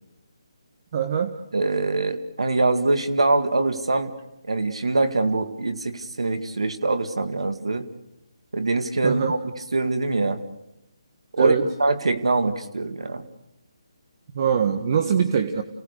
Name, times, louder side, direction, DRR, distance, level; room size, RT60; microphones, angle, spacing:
voice 1, 0.9-1.4 9.0-9.4 11.4-11.7 14.3-15.6, right 7 dB, 45° right, 6 dB, 1.5 m, -22 dB
voice 2, 1.5-4.1 4.5-7.9 8.5-9.4 9.7-10.4 11.4-11.5 11.8-13.2, right 2 dB, 75° right, 9 dB, 2.1 m, -23 dB
29.5 x 18.0 x 6.7 m, 0.88 s
figure-of-eight pair, 150°, 3 cm